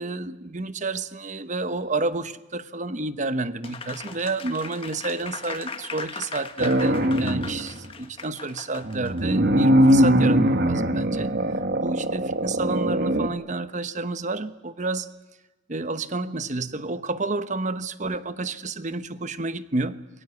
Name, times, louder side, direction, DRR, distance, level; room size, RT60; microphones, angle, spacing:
voice 1, 0.0-15.1 15.7-20.0, right 3 dB, 40° right, 12 dB, 1.1 m, -30 dB
Applause, 3.6-9.2, left 5 dB, 30° left, 1.6 m, -38 dB
sound 1, 6.6-7.7 8.8-13.3, equal, 55° right, 1.8 m, -21 dB
29.0 x 22.0 x 8.5 m, 1.1 s
head